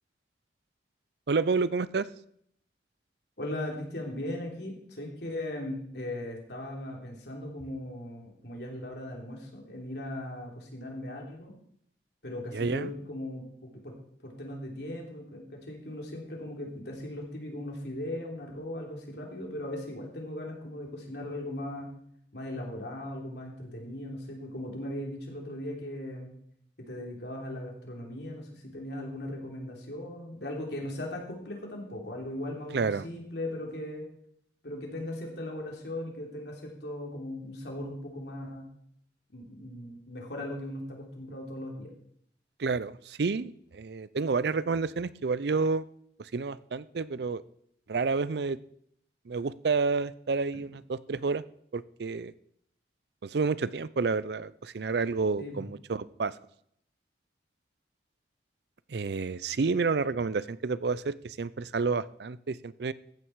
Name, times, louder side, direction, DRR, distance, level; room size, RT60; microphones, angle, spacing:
voice 1, 1.3-2.1 12.5-12.9 32.7-33.1 42.6-45.8 46.2-47.4 47.9-48.6 49.3-51.4 51.7-52.3 53.2-56.3 58.9-62.9, right 4 dB, 65° right, 18 dB, 0.5 m, -29 dB
voice 2, 3.4-11.5 12.2-13.9 14.2-21.9 22.3-26.3 26.9-34.1 34.6-38.7 39.3-41.9 55.4-55.7, left 1 dB, 70° left, 0 dB, 3.3 m, -38 dB
14.5 x 9.3 x 4.7 m, 0.68 s
head